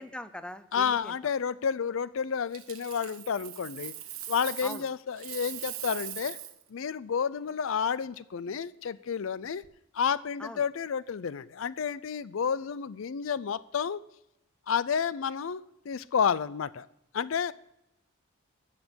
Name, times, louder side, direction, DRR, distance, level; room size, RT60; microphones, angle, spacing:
voice 1, 0.0-1.1 4.6-4.8 10.4-10.6, left 1 dB, 5° left, 11 dB, 0.5 m, -41 dB
voice 2, 0.7-3.9 4.3-6.4 6.7-9.6 9.9-14.0 14.7-16.9 17.1-17.5, left 7 dB, 65° left, 18 dB, 0.4 m, -30 dB
Coin (dropping), 2.5-4.9 5.2-6.6 9.4-9.7, right 12 dB, 75° right, 1.2 m, -41 dB
13.5 x 7.5 x 6.2 m, 0.86 s
head